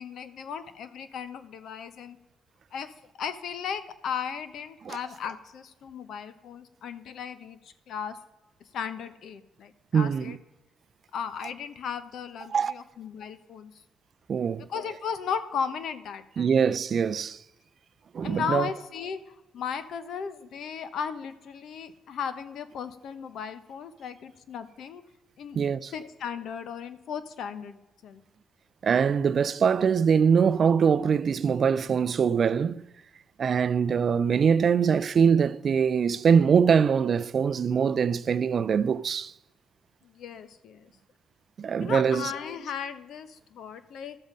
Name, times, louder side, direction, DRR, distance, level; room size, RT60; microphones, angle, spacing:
voice 1, 0.0-2.2 2.7-8.2 8.7-10.4 11.1-13.7 14.6-16.6 18.2-25.0 25.4-25.6 25.9-28.2 40.0-40.9 41.8-44.2, left 7 dB, 70° left, 0.9 m, -36 dB
voice 2, 9.9-10.4 12.5-12.7 14.3-14.7 16.4-17.4 18.1-18.7 25.5-25.9 28.8-32.8 33.4-39.3 41.6-42.3, right 6 dB, 50° right, 0.4 m, -23 dB
12.5 x 7.3 x 5.2 m
cardioid pair, 90°, 0 cm